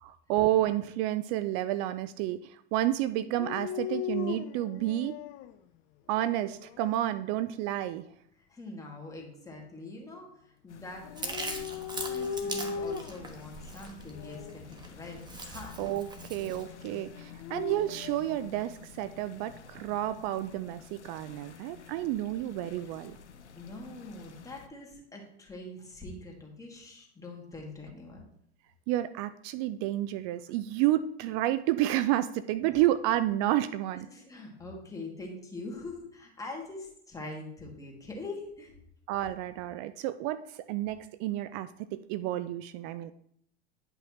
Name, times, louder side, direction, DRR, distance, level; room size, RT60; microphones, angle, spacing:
voice 1, 0.0-5.2 6.1-8.1 15.8-23.2 28.9-34.1 39.1-43.1, right 14 dB, 40° right, 13 dB, 0.4 m, -30 dB
Dog, 3.3-5.5 6.2-6.9 11.0-13.3 14.1-14.6 17.2-18.4, left 7 dB, 35° left, 0.5 m, -38 dB
voice 2, 8.5-11.6 11.9-15.8 16.2-16.3 16.7-17.0 23.5-28.2 32.6-32.8 33.9-38.8, left 2 dB, 10° left, -1 dB, 2.2 m, -44 dB
sound 1, 10.7-24.7, left 7 dB, 85° left, 0.8 m, -50 dB
Chewing mastication, 11.2-16.6, right 2 dB, 15° right, 1.2 m, -41 dB
10.0 x 5.5 x 3.1 m, 0.68 s
hypercardioid pair, 90°, 34 cm